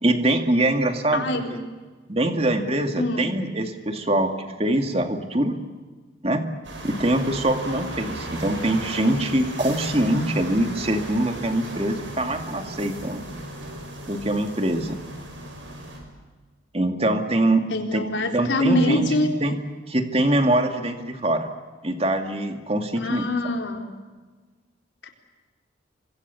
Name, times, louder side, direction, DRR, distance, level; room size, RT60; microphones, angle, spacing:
voice 1, 0.0-1.6 2.1-5.6 6.2-6.4 6.8-13.2 14.1-15.0 16.7-17.6 17.9-18.0 18.3-19.1 19.4-19.5 19.9-21.5 21.8-23.2, right 1 dB, 30° right, 5 dB, 2.3 m, -23 dB
voice 2, 1.1-1.6 3.0-3.3 17.7-19.3 23.0-23.8 25.0-25.1, left 1 dB, 65° left, 3 dB, 4.1 m, -24 dB
sound 1, 6.6-16.0, right 1 dB, 70° right, 7.5 m, -36 dB
29.5 x 25.0 x 7.1 m, 1.4 s
head